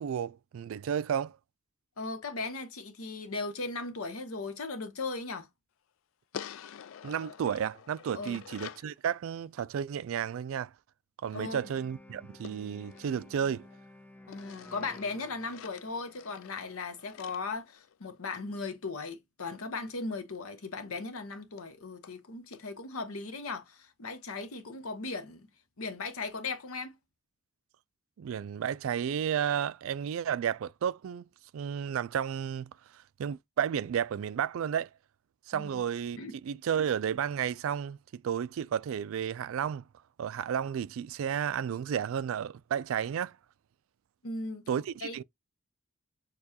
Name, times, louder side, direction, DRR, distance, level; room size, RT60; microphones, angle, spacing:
voice 1, 0.0-1.4 7.0-10.7 11.2-13.7 28.2-31.3 31.5-34.9 35.5-36.2 36.4-39.8 40.2-43.4 44.7-45.2, right 8 dB, 75° right, 0.3 m, -32 dB
voice 2, 2.0-5.5 8.1-8.4 11.3-11.7 14.3-25.5 25.8-26.9 35.5-35.8 36.2-36.3 44.2-44.6 45.0-45.2, left 3 dB, 90° left, 0.9 m, -37 dB
Scratching and Clawing, 6.3-8.9 12.4-13.8 14.3-18.4 20.3-20.4 20.7-20.8 21.2-21.3 21.6-21.7 22.0-22.2 22.5-22.6, left 8 dB, 70° left, 0.3 m, -48 dB
sound 1, 11.3-17.3, left 1 dB, 10° left, 0.4 m, -54 dB
6.6 x 2.3 x 2.8 m
head